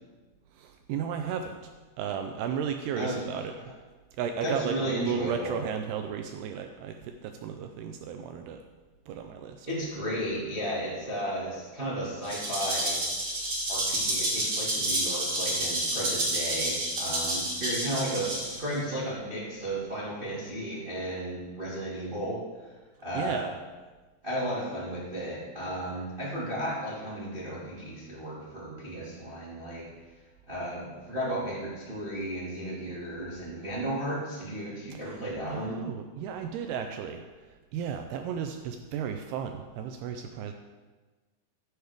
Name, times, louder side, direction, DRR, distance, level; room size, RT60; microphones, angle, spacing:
voice 1, 0.6-1.7 2.0-3.5 4.2-8.6 9.1-9.7 23.1-23.5 34.9-35.2 35.5-37.2 37.5-40.5, right 7 dB, 80° right, 6 dB, 2.4 m, -34 dB
voice 2, 4.4-5.6 9.7-13.0 13.7-22.7 23.0-23.5 24.2-29.8 30.5-35.8, right 1 dB, 55° right, -6 dB, 0.5 m, -34 dB
Rattle (instrument), 12.2-18.8, right 1 dB, 35° right, 2.5 m, -29 dB
14.5 x 8.0 x 3.5 m, 1.3 s
omnidirectional pair, 5.0 m